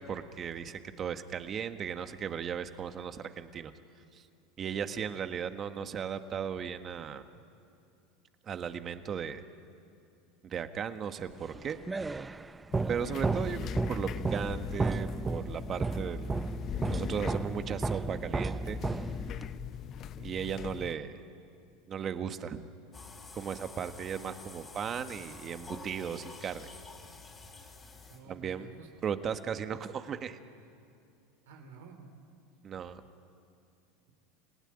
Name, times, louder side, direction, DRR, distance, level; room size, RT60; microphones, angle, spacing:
voice 1, 0.0-3.7 4.1-4.2 4.6-7.2 8.4-9.4 10.4-11.8 12.9-16.4 16.8-18.8 20.2-21.2 21.9-22.6 23.3-26.7 28.3-28.7 29.0-30.4 32.6-33.0, right 7 dB, 35° right, 9 dB, 1.5 m, -36 dB
sound 1, 11.5-19.6, right 3 dB, 15° right, 0.6 m, -34 dB
sound 2, 12.7-20.9, left 10 dB, 45° left, 0.8 m, -41 dB
voice 2, 19.5-20.1 28.0-28.9 31.5-32.1, right 5 dB, 80° right, 5 dB, 3.3 m, -52 dB
sound 3, 22.9-28.5, left 3 dB, 20° left, 3.9 m, -49 dB
29.0 x 17.5 x 10.0 m, 2.6 s
hypercardioid pair, 95°, 0 cm